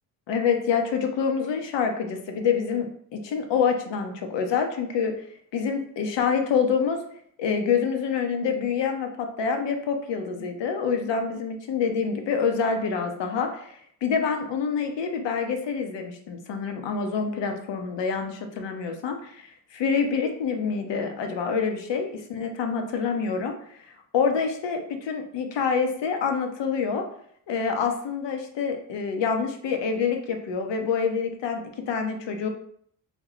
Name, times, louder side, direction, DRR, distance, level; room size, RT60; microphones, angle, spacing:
voice 1, 0.3-5.3 5.5-7.0 7.4-23.8 24.1-27.0 27.5-32.5, left 6 dB, 65° left, 5 dB, 0.8 m, -26 dB
3.1 x 2.2 x 3.9 m, 0.64 s
cardioid pair, 75°, 47 cm